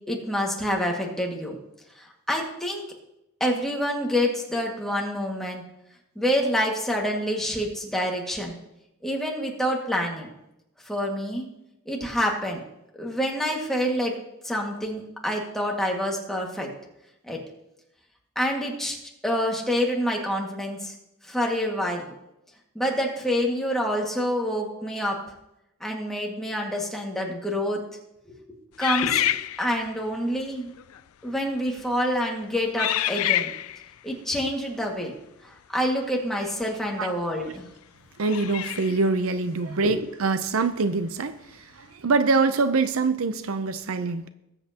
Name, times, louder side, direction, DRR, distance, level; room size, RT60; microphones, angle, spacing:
voice 1, 0.1-1.6 2.0-2.8 3.4-5.6 6.2-8.6 9.0-10.3 10.9-11.5 11.9-12.6 13.0-14.1 14.4-16.7 17.3-17.4 18.4-19.0 19.2-20.9 21.3-22.1 22.8-25.2 25.8-27.8 28.3-28.4 28.8-29.3 29.6-30.7 31.2-33.5 34.0-35.1 35.4-37.6 39.8-39.9, equal, ahead, -1 dB, 1.9 m, -27 dB
sound 1, 28.8-30.0 30.8-31.0 31.7-32.0 32.8-33.9 36.6-36.7 38.2-39.1, left 13 dB, 90° left, 0.4 m, -27 dB
voice 2, 38.2-44.3, right 3 dB, 70° right, 11 dB, 0.6 m, -24 dB
19.5 x 8.2 x 2.9 m, 0.87 s
head